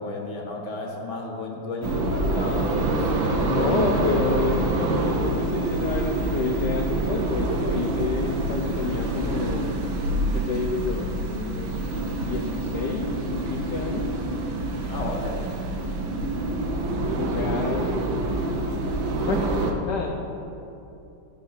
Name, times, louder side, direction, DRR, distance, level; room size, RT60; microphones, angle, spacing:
voice 1, 0.0-3.2 14.9-15.4, left 2 dB, 40° left, 0 dB, 1.6 m, -33 dB
sound 1, 1.8-19.7, right 2 dB, 80° right, 1.7 m, -26 dB
voice 2, 3.4-9.8 10.3-11.8 12.2-14.2 17.2-17.9 19.2-19.5 19.8-20.1, left 4 dB, 65° left, 0 dB, 1.3 m, -29 dB
14.0 x 5.3 x 5.9 m, 2.8 s
omnidirectional pair, 2.2 m